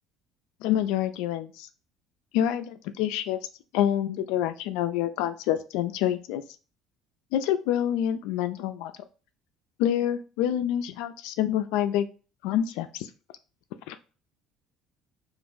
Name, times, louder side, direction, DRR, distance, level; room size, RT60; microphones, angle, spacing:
voice 1, 0.6-1.7 2.3-3.4 3.7-6.4 7.3-8.9 9.8-12.1 12.4-13.1 13.9-14.0, left 11 dB, 85° left, 10 dB, 0.4 m, -27 dB
2.5 x 2.5 x 3.6 m, 0.35 s
cardioid pair, 115°, 0 cm